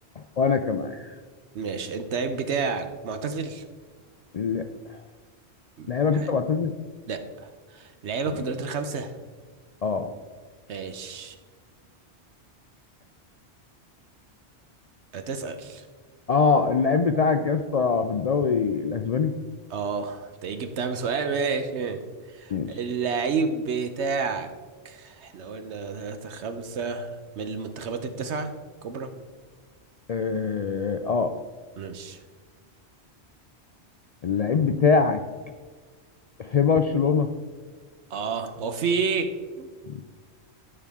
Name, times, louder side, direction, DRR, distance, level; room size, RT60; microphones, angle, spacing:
voice 1, 0.4-1.1 4.3-5.0 5.9-6.7 9.8-10.1 16.3-19.3 22.5-22.7 30.1-31.3 34.2-35.2 36.4-37.3 39.9-40.0, left 5 dB, 60° left, 7 dB, 0.4 m, -23 dB
voice 2, 1.5-3.6 5.8-6.3 7.1-7.2 7.7-9.1 10.7-11.4 15.1-15.8 19.7-22.0 22.3-24.5 24.8-28.5 28.8-29.1 31.8-32.2 38.1-39.3 39.6-39.7, right 5 dB, 85° right, 8 dB, 1.1 m, -30 dB
13.5 x 5.7 x 3.5 m, 1.5 s
omnidirectional pair, 1.1 m